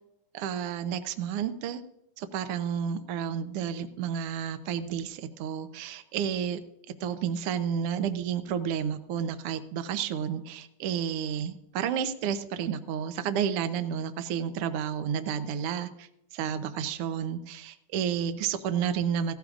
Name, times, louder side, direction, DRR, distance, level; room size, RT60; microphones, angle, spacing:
voice 1, 0.3-1.8 2.2-6.6 7.0-16.1 16.3-19.3, right 8 dB, 85° right, 10 dB, 1.3 m, -31 dB
16.5 x 14.0 x 2.5 m, 0.81 s
omnidirectional pair, 3.6 m